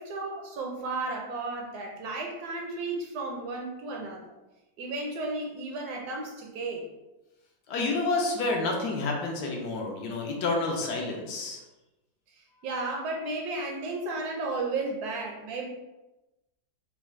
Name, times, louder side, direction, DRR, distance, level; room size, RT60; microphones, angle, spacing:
voice 1, 0.0-4.3 4.8-6.9 12.3-15.7, right 3 dB, 70° right, 0 dB, 1.0 m, -34 dB
voice 2, 7.7-11.6, left 3 dB, 75° left, 0 dB, 1.2 m, -29 dB
4.1 x 2.3 x 3.1 m, 1.0 s
omnidirectional pair, 1.9 m